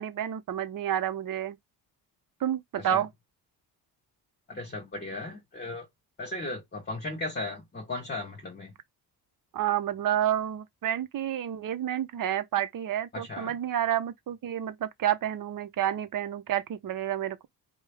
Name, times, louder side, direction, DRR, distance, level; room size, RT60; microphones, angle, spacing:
voice 1, 0.0-1.6 2.4-3.1 9.5-17.5, right 11 dB, 55° right, 0.8 m, -29 dB
voice 2, 4.5-5.9 6.2-8.7 13.1-13.5, left 2 dB, 25° left, 1.4 m, -36 dB
4.9 x 2.3 x 3.5 m
cardioid pair, 145°, 39 cm